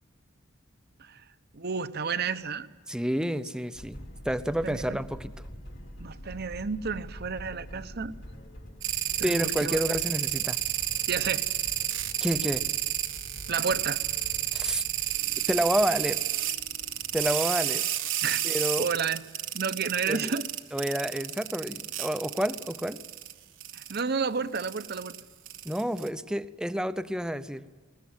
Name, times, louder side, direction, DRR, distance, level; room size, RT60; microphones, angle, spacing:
voice 1, 1.5-2.7 4.6-5.0 6.0-8.1 9.2-9.8 11.1-11.4 13.5-14.0 18.2-18.4 18.8-19.2 19.5-20.5 23.7-25.1, right 5 dB, 55° right, 12 dB, 0.8 m, -31 dB
voice 2, 2.9-4.0 4.2-5.3 9.2-10.6 12.2-12.6 14.5-14.8 15.5-16.2 17.1-17.9 18.4-18.9 20.1-20.3 20.7-23.0 25.6-27.6, equal, 5° right, 12 dB, 0.6 m, -29 dB
sound 1, 3.7-17.4, equal, 70° left, 5.1 m, -46 dB
sound 2, 8.8-23.3 23.6-24.0 24.6-26.1, right 12 dB, 70° right, 1.2 m, -30 dB
21.5 x 19.0 x 9.7 m, 1.3 s
head